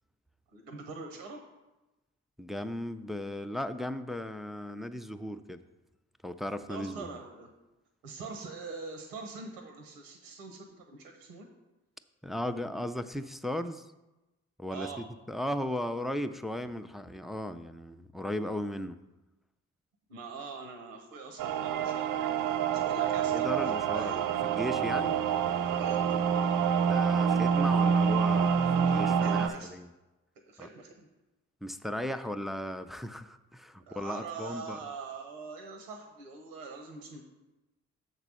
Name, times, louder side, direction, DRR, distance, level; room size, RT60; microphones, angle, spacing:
voice 1, 0.5-1.4 6.7-7.5 8.0-11.5 14.7-15.0 20.1-23.5 23.9-24.2 25.8-26.1 29.2-29.7 30.5-31.1 33.9-37.2, right 4 dB, 90° right, 4 dB, 0.9 m, -43 dB
voice 2, 2.4-5.6 6.2-7.2 12.2-13.9 14.6-14.9 15.3-19.0 23.3-25.2 26.8-29.9 30.6-30.7 31.6-34.8, left 1 dB, ahead, 10 dB, 0.4 m, -36 dB
sound 1, 21.4-29.5, right 7 dB, 65° right, 0.5 m, -27 dB
6.6 x 4.0 x 6.1 m, 1.0 s
hypercardioid pair, 50°, 35 cm